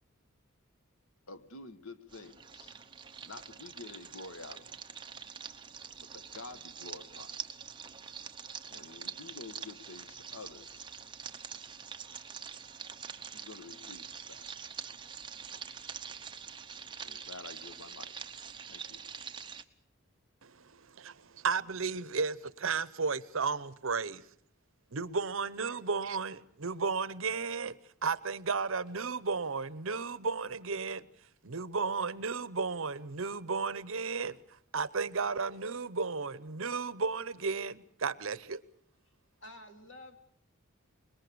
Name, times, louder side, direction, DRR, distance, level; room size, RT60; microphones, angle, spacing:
voice 1, 1.3-2.8 3.2-4.8 6.0-7.4 8.7-10.9 13.3-14.5 17.0-18.1 18.7-19.0, left 3 dB, 80° left, 1.4 m, -49 dB
sound 1, 2.1-19.6, right 7 dB, 20° right, 1.0 m, -45 dB
voice 2, 20.4-24.2 24.9-31.1 31.4-34.4 34.7-38.6, right 4 dB, 70° right, 0.9 m, -34 dB
voice 3, 39.4-40.2, equal, 60° left, 3.3 m, -49 dB
25.5 x 21.5 x 6.9 m
head